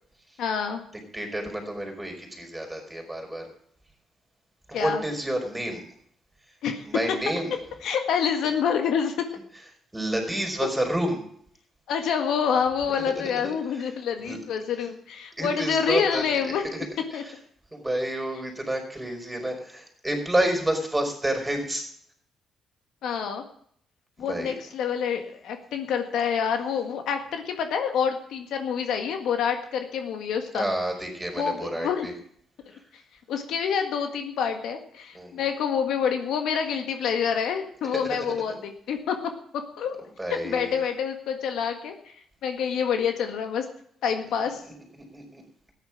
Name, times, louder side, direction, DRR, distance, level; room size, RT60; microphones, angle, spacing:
voice 1, 0.4-0.8 4.7-5.0 6.6-6.9 7.8-9.1 11.9-16.6 17.1-17.2 23.0-23.4 24.2-30.6 31.4-32.1 33.3-39.2 39.5-40.0 40.4-42.1 42.4-43.7 44.0-44.6, left 7 dB, 80° left, 5 dB, 1.7 m, -27 dB
voice 2, 1.1-3.5 4.7-5.8 6.8-7.5 9.9-11.2 13.7-13.9 14.2-14.4 15.4-17.3 17.7-21.9 24.2-24.5 30.5-32.1 32.7-32.8 35.1-35.5 37.9-38.2 38.5-38.6 40.2-40.8 44.4-44.7 45.1-45.4, right 1 dB, 10° right, 2 dB, 5.1 m, -29 dB
14.0 x 10.0 x 6.1 m, 0.63 s
cardioid pair, 90°, 0 cm